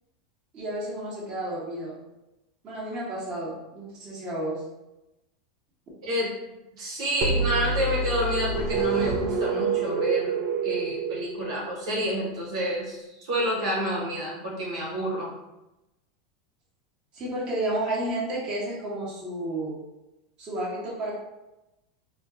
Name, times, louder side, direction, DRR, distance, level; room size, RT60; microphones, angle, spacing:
voice 1, 0.5-1.9 2.6-4.6 17.1-19.8 20.4-21.1, right 1 dB, 30° right, -7 dB, 1.1 m, -31 dB
voice 2, 6.7-10.3 10.6-15.3, equal, 85° right, -4 dB, 1.2 m, -29 dB
sound 1, 7.2-11.9, right 4 dB, 45° right, 0.4 m, -27 dB
2.5 x 2.2 x 3.6 m, 0.97 s
supercardioid pair, 135°, 3 cm